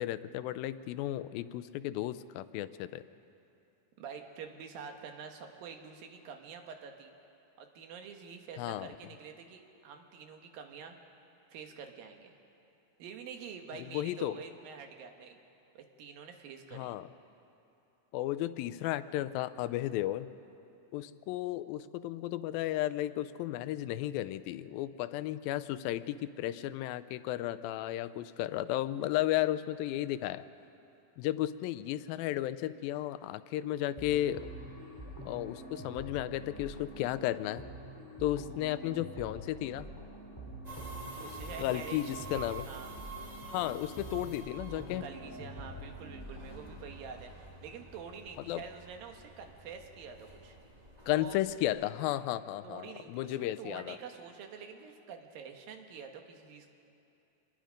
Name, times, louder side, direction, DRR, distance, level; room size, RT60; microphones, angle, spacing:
voice 1, 0.0-3.0 8.6-8.9 13.8-14.4 16.7-17.1 18.1-20.3 20.9-30.4 31.2-34.5 35.2-37.6 38.2-39.9 41.6-42.7 43.4-45.1 48.5-48.6 51.1-54.0, left 14 dB, 90° left, 15 dB, 2.4 m, -34 dB
voice 2, 4.0-7.1 7.6-11.0 11.5-12.3 13.0-15.4 15.7-17.0 41.2-42.1 42.6-42.9 45.0-50.6 51.1-51.4 52.6-56.7, right 6 dB, 80° right, 4 dB, 3.1 m, -47 dB
sound 1, 34.0-46.8, equal, 5° left, 3.4 m, -46 dB
sound 2, 40.6-51.6, right 3 dB, 15° right, 1.4 m, -49 dB
27.0 x 21.0 x 5.2 m, 2.8 s
omnidirectional pair, 4.0 m